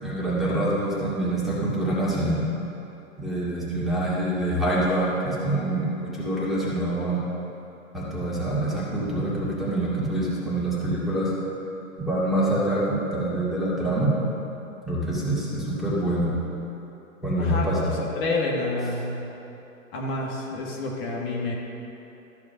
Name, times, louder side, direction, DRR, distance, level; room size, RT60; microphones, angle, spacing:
voice 1, 0.0-2.4 3.2-7.2 7.9-11.3 12.0-14.2 14.9-16.4 17.2-17.9, right 1 dB, ahead, -9 dB, 2.1 m, -25 dB
voice 2, 17.4-17.8 18.2-19.3 19.9-21.5, left 2 dB, 45° left, -3 dB, 1.8 m, -28 dB
13.5 x 4.8 x 6.4 m, 2.9 s
hypercardioid pair, 125°, 41 cm